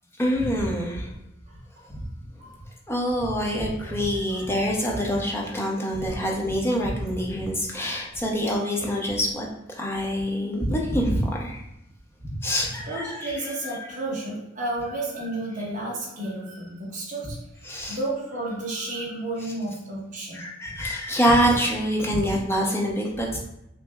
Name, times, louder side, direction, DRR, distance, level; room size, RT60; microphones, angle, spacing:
voice 1, 0.2-1.1 1.9-2.0 2.9-11.6 12.2-13.9 17.6-18.0 20.3-23.4, equal, 10° left, -2 dB, 0.7 m, -26 dB
voice 2, 1.5-1.9 2.4-2.6 3.8-4.0 4.3-4.5 6.0-6.1 7.9-8.1 12.8-20.5, right 2 dB, 40° right, -5 dB, 1.2 m, -32 dB
6.0 x 2.0 x 2.3 m, 0.85 s
head